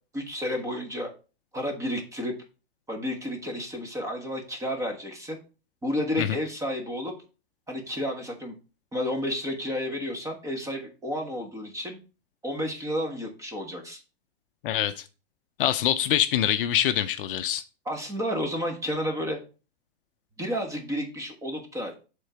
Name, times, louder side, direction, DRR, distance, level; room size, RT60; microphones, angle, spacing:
voice 1, 0.1-1.1 1.5-2.3 2.9-5.4 5.8-7.1 7.7-8.5 8.9-12.0 12.4-14.0 17.8-19.4 20.4-21.9, equal, 10° right, 1.4 m, -31 dB
voice 2, 14.6-15.0 15.6-17.6, left 11 dB, 55° left, 0.6 m, -24 dB
6.4 x 3.8 x 5.6 m
hypercardioid pair, 145°, 32 cm